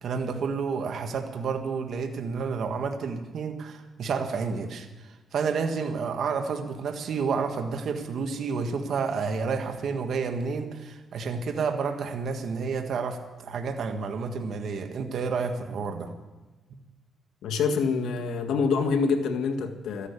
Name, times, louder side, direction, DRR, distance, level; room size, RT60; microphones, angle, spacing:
voice 1, 0.0-16.1, right 5 dB, 65° right, 5 dB, 1.7 m, -30 dB
voice 2, 17.4-20.1, left 5 dB, 85° left, 4 dB, 1.7 m, -26 dB
13.5 x 11.0 x 8.4 m, 1.2 s
cardioid pair, 95°, 0 cm